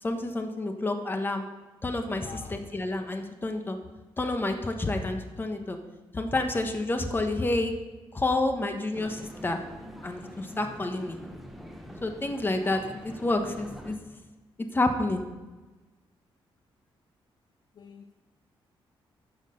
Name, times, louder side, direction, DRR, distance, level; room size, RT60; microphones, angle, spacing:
voice 1, 0.0-1.5 1.8-3.8 4.2-5.8 6.1-7.7 8.1-9.6 10.0-11.2 12.0-14.0 14.7-15.2, left 2 dB, 20° left, 5 dB, 1.3 m, -29 dB
voice 2, 2.2-2.6 17.7-18.1, left 6 dB, 50° left, 7 dB, 0.6 m, -46 dB
sound 1, 8.9-14.0, equal, ahead, 1.2 m, -44 dB
12.5 x 6.5 x 6.5 m, 1.2 s
cardioid pair, 130°, 10 cm